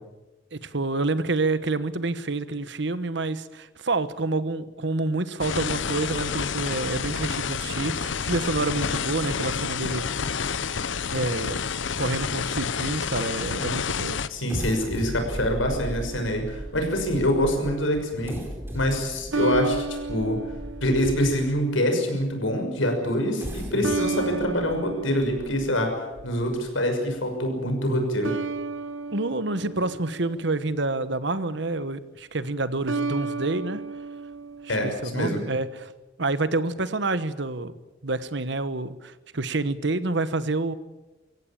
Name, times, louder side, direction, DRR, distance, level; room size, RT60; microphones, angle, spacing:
voice 1, 0.5-10.0 11.1-11.6 12.0-14.3 23.4-23.5 23.7-23.9 29.1-33.8 34.6-35.9 36.2-37.7 38.0-40.7, right 2 dB, 65° right, 13 dB, 1.3 m, -28 dB
sound 1, 5.4-14.3, left 6 dB, 70° left, 0.8 m, -29 dB
voice 2, 14.3-18.4 18.7-20.4 20.8-25.9 26.2-28.3 34.7-35.4, equal, 90° left, 4 dB, 6.1 m, -25 dB
sound 2, 14.5-21.6 22.2-22.3 23.2-26.7 27.2-27.3 27.7-27.9, equal, 10° right, 3.8 m, -37 dB
sound 3, 15.7-17.0 19.3-21.8 23.8-26.4 28.2-30.7 32.9-35.2, right 4 dB, 85° right, 1.2 m, -33 dB
24.0 x 16.5 x 8.8 m, 1.1 s
head